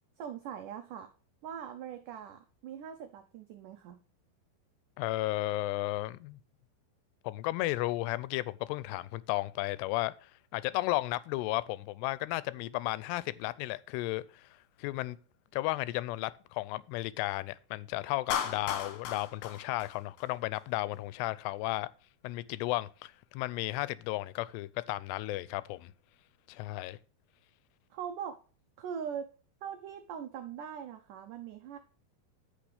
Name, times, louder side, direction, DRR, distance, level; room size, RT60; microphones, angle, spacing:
voice 1, 0.2-1.1 1.4-4.0 27.9-28.3 28.8-29.3 29.6-31.8, right 8 dB, 85° right, 1.8 m, -41 dB
voice 2, 5.0-6.4 7.2-14.5 14.8-15.2 15.5-21.9 22.2-25.9 26.5-27.0, left 18 dB, 85° left, 2.7 m, -34 dB
Clapping, 18.3-20.6, left 9 dB, 70° left, 3.1 m, -36 dB
15.0 x 5.8 x 3.4 m
omnidirectional pair, 4.8 m